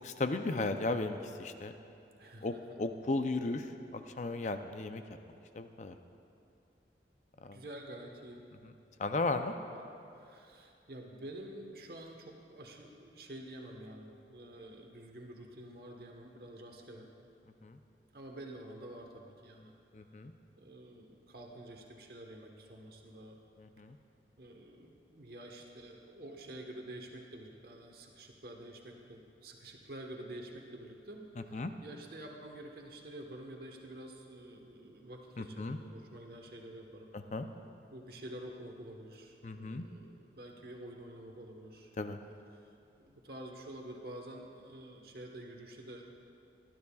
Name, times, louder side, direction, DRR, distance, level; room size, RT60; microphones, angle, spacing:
voice 1, 0.0-1.7 2.4-5.0 5.5-6.0 7.4-7.6 8.6-8.7 9.0-9.5 17.6-17.8 19.9-20.3 23.6-24.0 31.5-31.7 35.4-35.8 37.1-37.5 39.4-39.9 42.0-42.2, left 2 dB, 40° left, 8 dB, 0.5 m, -35 dB
voice 2, 2.2-2.8 7.5-8.5 9.5-9.8 10.1-17.1 18.1-19.7 20.0-20.3 20.6-23.4 24.4-37.1 37.9-41.9 42.6-42.7 43.0-46.0, right 1 dB, 55° right, 2 dB, 1.2 m, -48 dB
19.5 x 12.0 x 2.4 m, 2.6 s
head